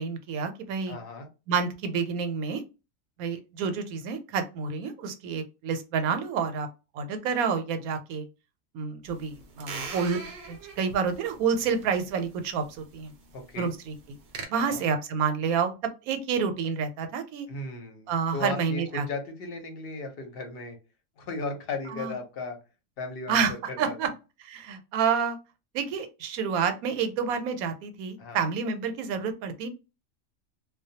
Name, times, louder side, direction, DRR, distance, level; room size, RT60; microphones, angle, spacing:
voice 1, 0.0-1.0 1.5-2.6 3.2-6.7 6.9-8.3 8.7-10.2 10.5-13.1 13.6-14.0 14.5-15.7 16.0-17.5 18.1-19.1 21.9-22.1 23.3-23.5 23.8-24.1 24.4-25.4 25.7-29.7, right 6 dB, 85° right, 8 dB, 1.0 m, -29 dB
voice 2, 0.9-1.3 13.3-13.7 14.5-14.8 17.5-20.8 21.2-22.6 23.0-24.1 28.2-28.4, left 3 dB, 55° left, 4 dB, 0.8 m, -36 dB
sound 1, 9.1-14.4, right 5 dB, 60° right, 0.6 m, -43 dB
2.2 x 2.2 x 2.7 m, 0.29 s
omnidirectional pair, 1.5 m